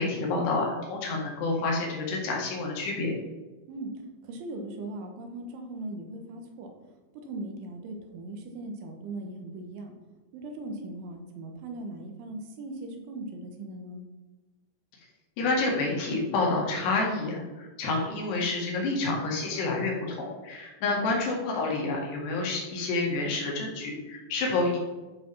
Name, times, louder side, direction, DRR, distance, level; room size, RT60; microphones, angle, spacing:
voice 1, 0.0-3.1 15.4-24.8, left 3 dB, 65° left, -2 dB, 3.8 m, -28 dB
voice 2, 4.2-6.7 7.1-9.9 10.3-14.0 20.9-21.1, right 2 dB, 80° right, 3 dB, 3.6 m, -39 dB
11.5 x 4.9 x 5.4 m, 1.2 s
omnidirectional pair, 5.5 m